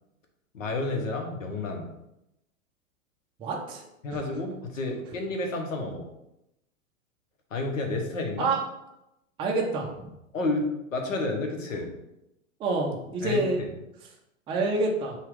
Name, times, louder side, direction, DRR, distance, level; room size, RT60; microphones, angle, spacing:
voice 1, 0.5-1.9 4.0-6.1 7.5-8.5 10.3-11.9 13.2-13.7, left 2 dB, 65° left, 3 dB, 1.1 m, -30 dB
voice 2, 3.4-3.8 4.1-4.2 8.4-8.6 9.4-9.9 12.6-13.6 14.5-15.2, right 2 dB, 15° right, -1 dB, 0.5 m, -27 dB
5.5 x 2.4 x 3.4 m, 0.87 s
figure-of-eight pair, 100°, 41 cm